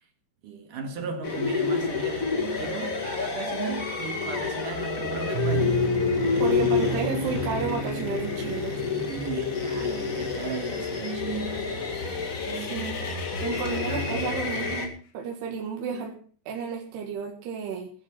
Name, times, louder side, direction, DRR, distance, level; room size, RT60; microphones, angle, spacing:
voice 1, 0.4-5.9 6.3-6.9 9.1-11.9 12.4-13.1 13.5-14.3 15.9-16.1, right 5 dB, 60° right, 2.9 m, -36 dB
sound 1, 1.2-14.9, left 5 dB, 35° left, 1.4 m, -29 dB
sound 2, 5.3-12.3, right 4 dB, 90° right, 4.7 m, -34 dB
voice 2, 6.4-8.7 12.6-13.1 13.4-16.1 16.5-17.9, right 6 dB, 75° right, 3.9 m, -32 dB
sound 3, 11.8-15.3, left 7 dB, 70° left, 3.7 m, -45 dB
16.0 x 9.9 x 5.9 m
omnidirectional pair, 4.9 m